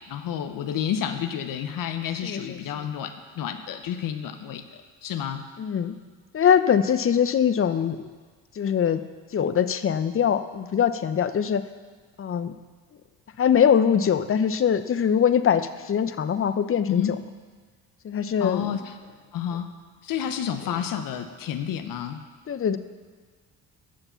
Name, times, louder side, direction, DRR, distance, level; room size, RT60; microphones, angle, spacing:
voice 1, 0.1-5.4 16.9-17.1 18.4-19.0 19.3-19.7 20.0-22.2, left 9 dB, 60° left, 7 dB, 1.0 m, -30 dB
voice 2, 2.2-2.6 5.6-6.0 6.3-8.1 8.6-9.0 9.3-11.6 12.2-12.5 13.4-15.6 15.9-17.0 18.0-18.7 22.5-22.8, left 8 dB, 35° left, 11 dB, 0.7 m, -22 dB
12.5 x 6.8 x 5.7 m, 1.5 s
supercardioid pair, 65°, 37 cm